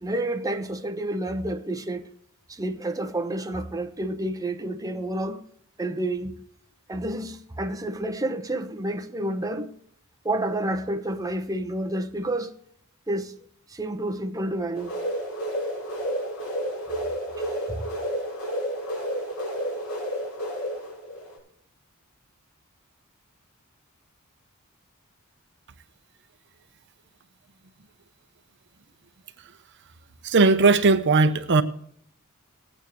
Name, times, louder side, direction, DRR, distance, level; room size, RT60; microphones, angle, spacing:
voice 1, 0.0-2.0 2.5-5.4 5.8-6.4 6.9-9.7 10.2-12.5 13.1-13.4 13.7-14.9, right 1 dB, 15° right, 0.9 m, -29 dB
sound 1, 14.7-21.4, equal, 80° left, 6.3 m, -31 dB
voice 2, 30.2-31.6, right 3 dB, 55° right, 0.7 m, -18 dB
19.5 x 9.0 x 3.1 m
head